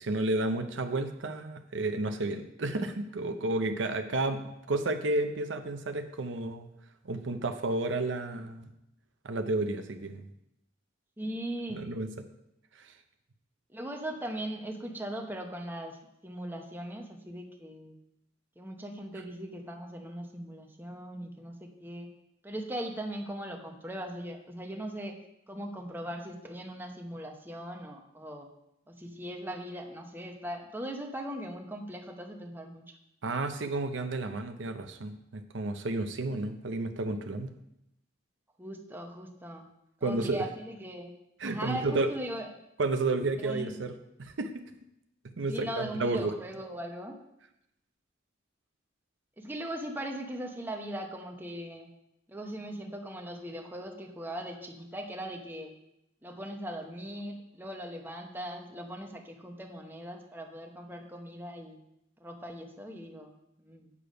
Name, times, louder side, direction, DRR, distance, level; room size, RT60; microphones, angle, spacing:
voice 1, 0.0-6.7 7.0-8.7 9.2-10.3 11.7-12.1 12.7-12.9 33.2-37.5 40.0-40.4 41.4-42.1 42.8-44.6 45.4-46.3, right 2 dB, 70° right, 7 dB, 0.7 m, -31 dB
voice 2, 11.2-11.8 13.7-16.0 16.2-18.0 18.6-22.1 22.4-25.2 25.5-28.5 28.9-32.8 38.6-39.7 40.0-41.2 41.4-42.5 43.3-43.8 45.5-47.2 49.4-51.9 52.3-55.7 56.2-61.8 62.2-63.9, right 1 dB, 10° right, 3 dB, 0.9 m, -39 dB
8.4 x 6.9 x 5.1 m, 0.83 s
head